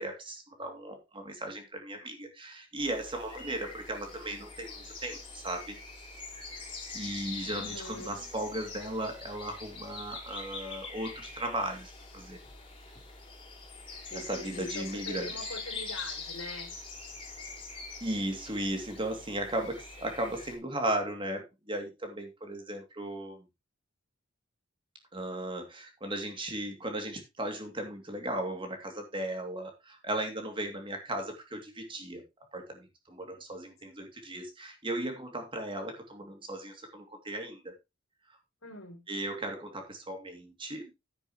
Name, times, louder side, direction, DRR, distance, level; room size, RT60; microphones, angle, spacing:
voice 1, 0.0-5.8 6.9-12.4 14.1-15.4 18.0-23.4 25.1-32.2 32.5-37.7 39.1-40.9, right 1 dB, 25° right, 2.7 m, -36 dB
sound 1, 2.8-20.6, left 4 dB, 25° left, 3.9 m, -44 dB
voice 2, 7.5-8.3 14.1-16.7 38.6-39.0, left 2 dB, 85° left, 3.4 m, -43 dB
10.5 x 10.0 x 3.1 m
head